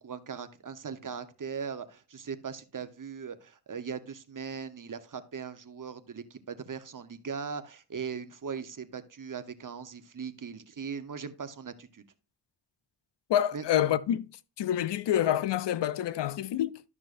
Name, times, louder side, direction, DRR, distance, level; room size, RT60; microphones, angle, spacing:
voice 1, 0.0-12.0 13.5-13.6, right 6 dB, 50° right, 1.0 m, -39 dB
voice 2, 13.3-14.3 14.6-16.8, left 11 dB, 90° left, 0.6 m, -27 dB
12.5 x 6.2 x 2.6 m
cardioid pair, 50°, 41 cm